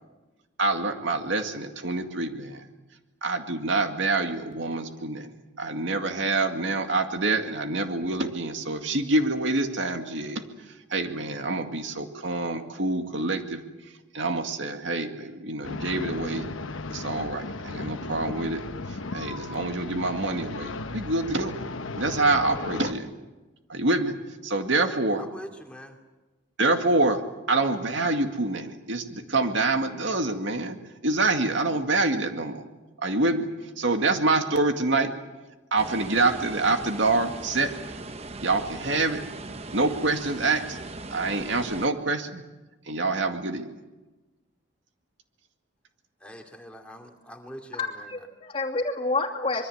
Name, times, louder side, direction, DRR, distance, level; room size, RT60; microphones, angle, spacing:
voice 1, 0.6-2.7 3.2-5.3 5.6-10.4 10.9-13.6 14.1-16.5 16.9-18.6 19.1-21.5 22.0-23.1 23.7-24.1 24.4-25.2 26.6-27.2 27.5-30.8 31.0-32.6 33.0-33.5 33.8-35.1 35.7-37.9 38.4-39.2 39.7-40.8 41.1-42.4 42.9-43.7, right 2 dB, 70° right, 5 dB, 2.1 m, -26 dB
sound 1, 15.6-22.9, left 3 dB, 85° left, 1.1 m, -36 dB
voice 2, 25.2-26.0 46.2-48.1, equal, 5° left, 2 dB, 2.6 m, -43 dB
sound 2, 35.8-41.9, right 2 dB, 30° right, 0.9 m, -39 dB
voice 3, 47.7-49.7, left 3 dB, 30° left, 1 dB, 2.7 m, -29 dB
25.0 x 23.0 x 8.0 m, 1.1 s
head